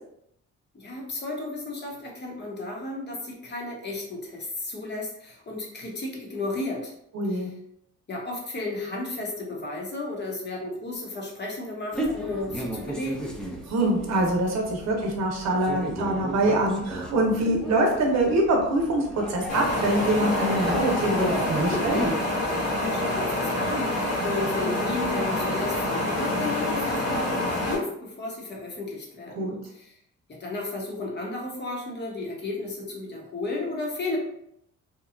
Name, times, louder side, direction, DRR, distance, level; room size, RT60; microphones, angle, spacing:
voice 1, 0.7-6.9 7.3-7.5 8.1-13.3 22.7-30.0 30.3-34.2, left 2 dB, 35° left, -2 dB, 0.9 m, -33 dB
voice 2, 7.1-7.5 13.7-22.0 29.4-29.6, right 1 dB, 60° right, 0 dB, 0.8 m, -24 dB
sound 1, 11.9-22.1, equal, 5° left, 0.5 m, -34 dB
sound 2, 19.5-27.8, left 1 dB, 80° left, 1.2 m, -27 dB
2.9 x 2.3 x 2.4 m, 0.75 s
cardioid pair, 90°, 30 cm